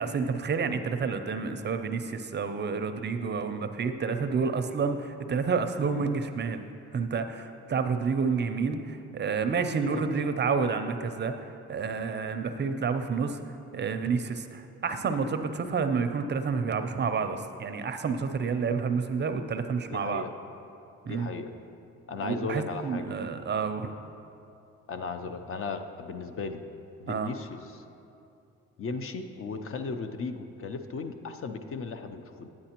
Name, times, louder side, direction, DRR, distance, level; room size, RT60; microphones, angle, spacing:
voice 1, 0.0-13.4 13.7-20.2 21.1-21.3 22.2-23.9 27.1-27.3, right 5 dB, 35° right, 8 dB, 0.5 m, -29 dB
voice 2, 19.9-20.3 21.0-21.5 22.1-23.2 24.9-26.7 27.0-27.8 28.8-32.5, left 4 dB, 45° left, 8 dB, 0.5 m, -36 dB
9.6 x 8.9 x 2.9 m, 2.7 s
cardioid pair, 90°, 30 cm